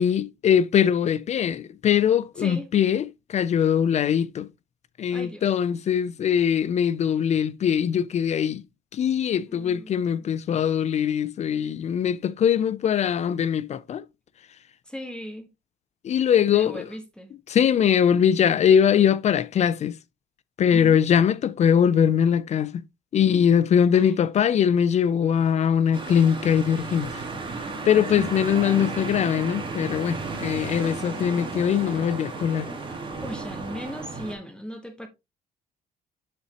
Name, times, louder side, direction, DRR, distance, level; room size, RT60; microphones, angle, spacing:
voice 1, 0.0-4.5 5.0-8.6 8.9-14.0 16.0-16.8 17.5-19.9 20.6-22.8 23.1-27.1 27.9-32.7, left 8 dB, 40° left, 0.4 m, -22 dB
voice 2, 2.4-2.7 5.1-5.5 9.5-10.7 14.8-15.5 16.5-17.3 20.7-21.1 23.9-24.1 28.1-28.8 33.2-35.1, equal, 5° left, 1.4 m, -38 dB
sound 1, 25.9-34.3, right 3 dB, 30° right, 2.4 m, -34 dB
7.7 x 5.6 x 2.9 m
cardioid pair, 110°, 17 cm